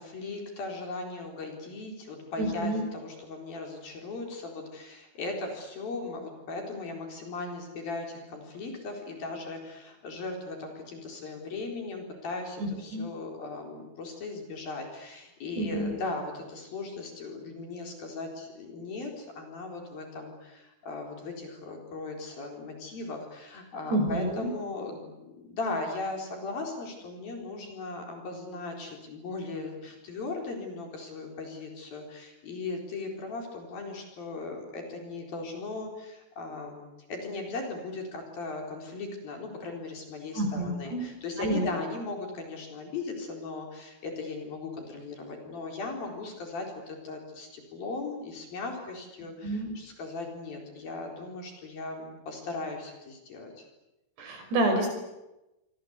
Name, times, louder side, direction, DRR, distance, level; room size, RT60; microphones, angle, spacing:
voice 1, 0.0-36.8 37.1-53.7, left 3 dB, 50° left, 2 dB, 5.8 m, -38 dB
voice 2, 2.4-2.8 12.6-13.0 15.6-15.9 23.9-24.5 40.4-41.0 41.4-41.7 49.4-49.7 54.2-54.9, right 1 dB, 55° right, 5 dB, 7.2 m, -28 dB
28.5 x 24.5 x 8.3 m, 0.98 s
omnidirectional pair, 5.8 m